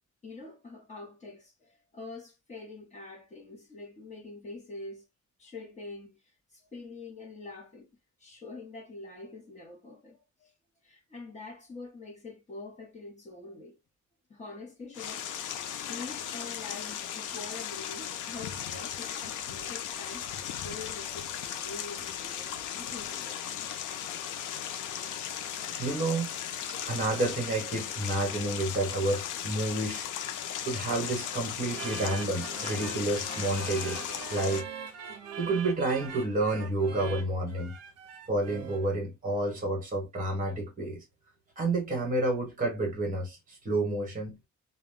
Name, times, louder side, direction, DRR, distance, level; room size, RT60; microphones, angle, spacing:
voice 1, 0.2-5.1 5.4-6.2 6.5-7.9 8.2-10.5 10.8-13.8 14.3-15.3 15.6-23.7, left 3 dB, 25° left, 0.7 m, -45 dB
sound 1, 14.9-34.6, left 9 dB, 80° left, 0.5 m, -37 dB
voice 2, 25.4-26.3 26.9-30.1 30.6-34.0 34.3-34.7 35.4-37.7 38.3-41.0 41.6-44.4, right 2 dB, 25° right, 1.0 m, -30 dB
sound 2, 31.7-38.9, right 7 dB, 55° right, 0.6 m, -42 dB
2.2 x 2.1 x 3.5 m
cardioid pair, 175°, 30 cm